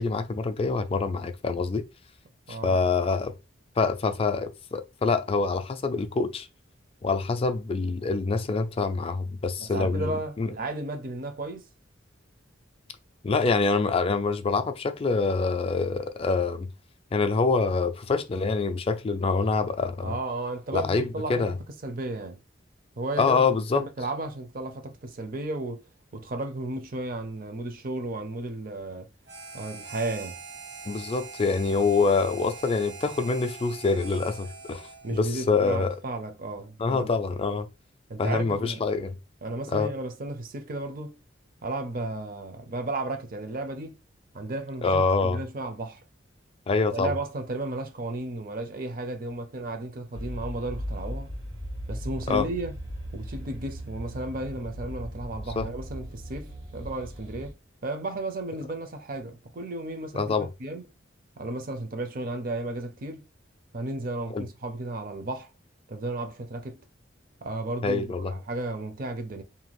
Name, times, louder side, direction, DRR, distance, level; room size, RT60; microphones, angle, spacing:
voice 1, 0.0-1.8 2.5-3.3 3.8-6.5 7.0-10.1 10.4-10.5 13.2-16.7 17.1-20.1 20.7-21.5 23.2-23.8 30.9-36.0 36.8-37.7 38.2-39.2 39.7-39.9 44.8-45.4 46.7-47.1 52.3-52.5 55.6-55.7 60.1-60.5 64.3-64.5 67.8-68.3, left 4 dB, 30° left, 0.3 m, -25 dB
voice 2, 2.5-2.9 9.6-11.7 20.0-21.4 21.8-22.4 23.0-23.4 23.7-25.8 26.1-29.1 29.5-30.4 35.0-37.1 38.1-38.8 39.4-41.2 41.6-44.0 44.3-46.0 46.9-51.3 51.9-52.7 53.1-57.5 57.8-60.8 61.4-63.3 63.7-65.5 65.9-66.8 67.4-69.4, right 2 dB, 50° right, 0.6 m, -34 dB
Harmonica, 29.3-35.3, right 4 dB, 65° right, 1.1 m, -43 dB
sound 1, 50.1-57.5, equal, 90° right, 1.3 m, -37 dB
2.7 x 2.3 x 3.0 m
head